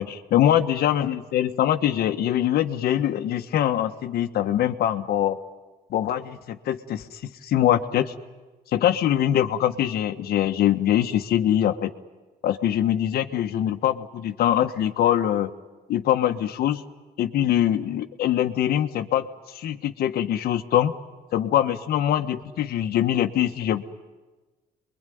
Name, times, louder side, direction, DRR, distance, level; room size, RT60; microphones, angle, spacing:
voice 1, 0.0-5.4 5.9-8.1 8.7-11.9 12.4-15.5 15.9-16.8 17.2-20.9 21.3-23.9, left 11 dB, 65° left, 8 dB, 1.5 m, -23 dB
27.5 x 22.5 x 9.4 m, 1.2 s
cardioid pair, 110°, 17 cm